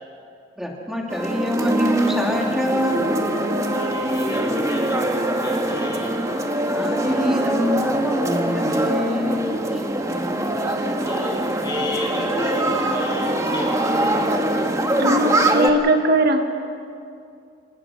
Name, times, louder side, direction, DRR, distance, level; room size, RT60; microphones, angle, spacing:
voice 1, 0.6-3.0 6.7-9.8, left 1 dB, ahead, -1 dB, 2.8 m, -25 dB
sound 1, 1.1-15.7, right 1 dB, 15° right, 1.4 m, -23 dB
voice 2, 3.7-6.2 10.7-10.8 11.0-14.2, left 1 dB, 25° left, -2 dB, 5.9 m, -32 dB
voice 3, 15.0-16.4, right 1 dB, 55° right, 5 dB, 1.4 m, -19 dB
27.0 x 19.0 x 6.3 m, 2.5 s
head